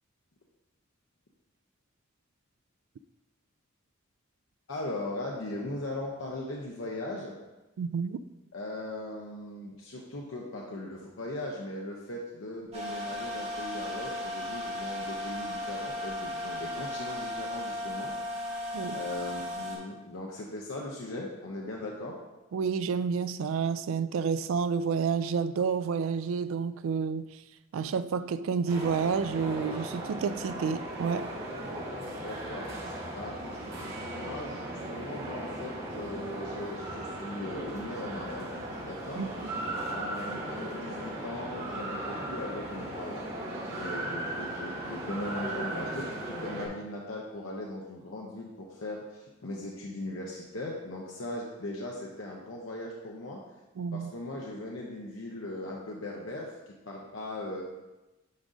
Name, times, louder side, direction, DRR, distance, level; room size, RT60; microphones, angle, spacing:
voice 1, 4.7-7.4 8.5-18.1 18.9-22.2 32.0-38.5 38.8-39.2 39.9-53.4 53.9-57.6, left 1 dB, 65° left, 0.7 m, -39 dB
voice 2, 7.8-8.2 18.7-19.0 22.5-27.3 27.7-31.3 39.2-39.6 53.8-54.1, right 6 dB, 70° right, 0.3 m, -30 dB
sound 1, 12.7-19.8, left 1 dB, 30° right, 1.8 m, -36 dB
sound 2, 28.7-46.7, right 1 dB, 50° right, 2.3 m, -37 dB
9.4 x 4.9 x 2.6 m
head